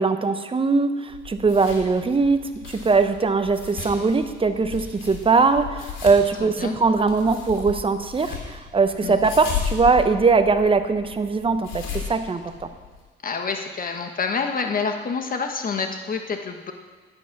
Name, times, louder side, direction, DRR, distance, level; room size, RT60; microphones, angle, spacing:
voice 1, 0.0-12.4, right 4 dB, 25° right, 9 dB, 0.9 m, -21 dB
sound 1, 1.1-13.0, left 7 dB, 90° left, 3.5 m, -35 dB
voice 2, 13.2-16.7, left 5 dB, 45° left, 5 dB, 1.4 m, -27 dB
10.5 x 9.7 x 6.1 m, 1.4 s
cardioid pair, 90°, 20 cm